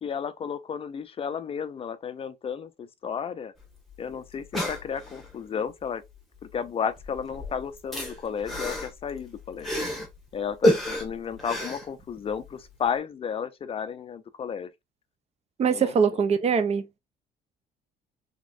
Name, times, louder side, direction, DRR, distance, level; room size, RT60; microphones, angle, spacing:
voice 1, 0.0-3.5 4.0-6.0 6.5-9.7 10.3-14.7 15.7-16.2, left 7 dB, 35° left, 0.4 m, -33 dB
sound 1, 3.6-3.7 3.9-4.0 4.3-5.3 6.4-6.7 7.0-10.2 10.6-12.5 12.9-13.0, left 1 dB, ahead, 1.2 m, -29 dB
voice 2, 15.6-17.0, right 6 dB, 40° right, 0.6 m, -23 dB
3.6 x 3.0 x 2.4 m
cardioid pair, 110°, 17 cm